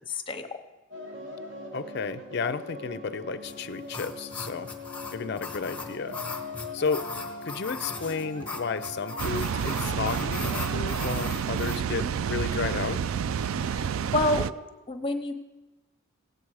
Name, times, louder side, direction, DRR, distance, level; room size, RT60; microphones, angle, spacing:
voice 1, 0.1-0.5 13.8-14.5 14.9-15.3, left 1 dB, 25° left, 8 dB, 0.8 m, -28 dB
sound 1, 0.9-11.1, left 2 dB, 60° right, 2.1 m, -41 dB
voice 2, 1.7-4.7 5.1-6.2 6.7-7.1 7.4-13.0, left 5 dB, 50° left, 14 dB, 0.4 m, -32 dB
sound 2, 3.4-11.8, left 4 dB, 5° left, 1.1 m, -39 dB
Water, 9.2-14.5, right 7 dB, 75° right, 0.3 m, -29 dB
17.0 x 8.7 x 4.8 m, 1.1 s
head